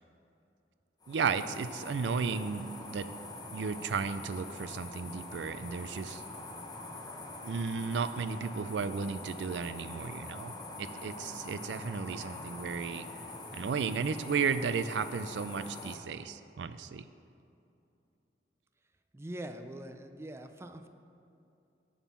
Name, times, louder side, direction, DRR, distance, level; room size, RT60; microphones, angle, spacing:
sound 1, 1.0-16.0, left 2 dB, 25° left, 0.9 m, -44 dB
voice 1, 1.1-3.1 3.5-6.2 7.4-10.5 10.8-13.0 13.5-17.0, right 5 dB, 80° right, 12 dB, 0.4 m, -34 dB
voice 2, 19.1-20.9, right 1 dB, 15° right, 7 dB, 0.4 m, -43 dB
11.0 x 3.7 x 7.3 m, 2.7 s
head